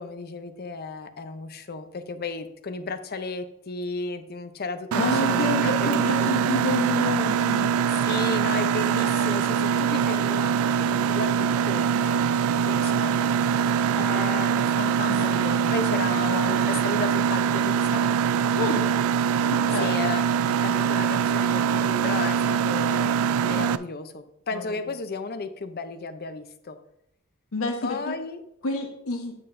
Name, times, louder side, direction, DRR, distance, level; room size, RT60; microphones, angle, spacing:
voice 1, 0.0-6.7 7.9-13.4 14.0-18.0 19.8-23.1 23.4-26.8 27.8-28.4, left 3 dB, 50° left, 10 dB, 0.6 m, -34 dB
Mechanisms, 4.9-23.8, right 7 dB, 80° right, 0.3 m, -23 dB
voice 2, 5.0-7.7 15.1-15.6 16.3-16.6 18.5-18.9 19.5-20.0 24.5-24.7 27.5-28.2 28.6-29.4, left 2 dB, 75° left, 2 dB, 1.0 m, -29 dB
8.8 x 7.6 x 2.6 m, 0.77 s
head